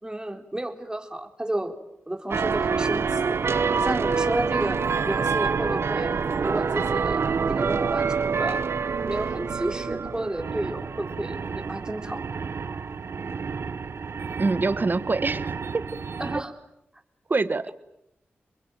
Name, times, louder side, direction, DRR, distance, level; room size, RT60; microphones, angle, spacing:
voice 1, 0.0-1.8 2.1-3.4 3.7-6.2 6.4-8.6 9.0-12.2 16.2-16.5, right 1 dB, 20° right, 4 dB, 4.0 m, -32 dB
sound 1, 2.3-16.4, right 5 dB, 75° right, 1.1 m, -27 dB
voice 2, 14.4-15.8 17.3-17.7, right 3 dB, 50° right, 14 dB, 1.4 m, -25 dB
28.5 x 21.5 x 9.2 m, 0.84 s
cardioid pair, 50°, 4 cm